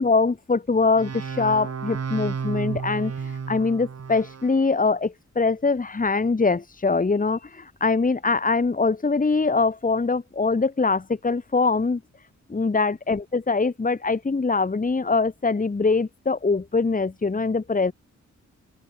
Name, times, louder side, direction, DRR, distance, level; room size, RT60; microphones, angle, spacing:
voice 1, 0.0-3.1 3.5-12.0 12.5-17.9, left 4 dB, 25° left, 2.7 m, -23 dB
sound 1, 1.0-4.6, right 6 dB, 55° right, 7.6 m, -32 dB
open air
cardioid pair, 100°, 30 cm